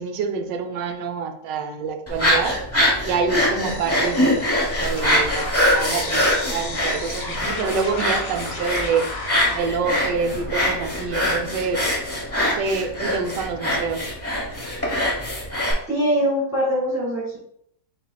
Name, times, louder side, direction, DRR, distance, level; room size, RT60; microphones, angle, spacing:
voice 1, 0.0-2.6 3.0-4.4 4.8-9.1 9.5-11.8 12.4-14.1, right 5 dB, 90° right, 5 dB, 1.3 m, -26 dB
sound 1, 2.1-15.7, equal, 15° left, 0.6 m, -23 dB
sound 2, 3.6-9.6, left 3 dB, 60° left, 1.4 m, -33 dB
voice 2, 15.9-17.4, equal, 10° right, -7 dB, 1.5 m, -22 dB
7.7 x 2.7 x 2.3 m, 0.73 s
omnidirectional pair, 1.9 m